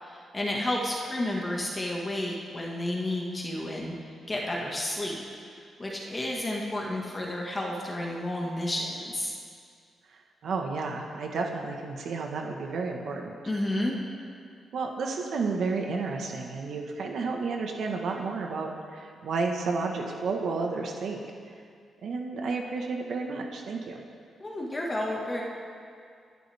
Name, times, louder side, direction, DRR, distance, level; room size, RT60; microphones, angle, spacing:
voice 1, 0.0-4.0 4.3-5.2 5.5-9.3 13.5-13.9 24.4-25.4, left 1 dB, 20° left, -2 dB, 1.8 m, -31 dB
voice 2, 10.4-13.3 14.7-21.2 22.0-24.0, right 4 dB, 70° right, 2 dB, 1.4 m, -31 dB
24.0 x 11.0 x 3.6 m, 2.3 s
cardioid pair, 105°, 0 cm